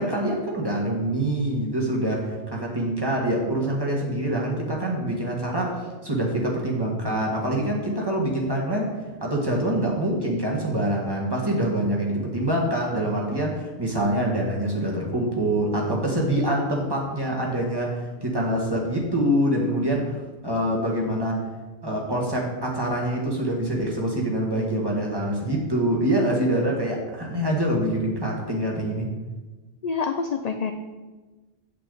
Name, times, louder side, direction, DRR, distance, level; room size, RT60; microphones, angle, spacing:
voice 1, 0.0-8.9 9.2-21.4 21.8-29.1, right 1 dB, 20° right, -2 dB, 1.7 m, -25 dB
voice 2, 29.8-30.7, left 5 dB, 50° left, 6 dB, 0.5 m, -26 dB
8.4 x 8.1 x 3.9 m, 1.2 s
omnidirectional pair, 1.1 m